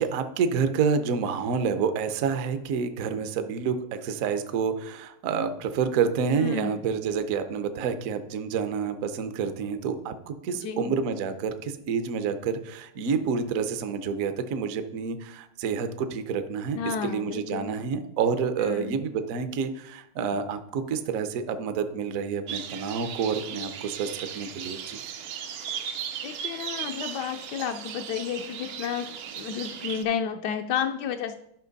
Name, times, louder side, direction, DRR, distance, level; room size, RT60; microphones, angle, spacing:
voice 1, 0.0-25.0, right 6 dB, 70° right, 9 dB, 0.8 m, -28 dB
voice 2, 6.4-6.8 10.6-10.9 16.8-17.8 18.6-19.0 26.2-31.4, left 8 dB, 80° left, 5 dB, 0.9 m, -31 dB
sound 1, 22.5-30.0, right 8 dB, 85° right, 1.7 m, -37 dB
12.0 x 5.7 x 4.0 m, 0.78 s
omnidirectional pair, 2.3 m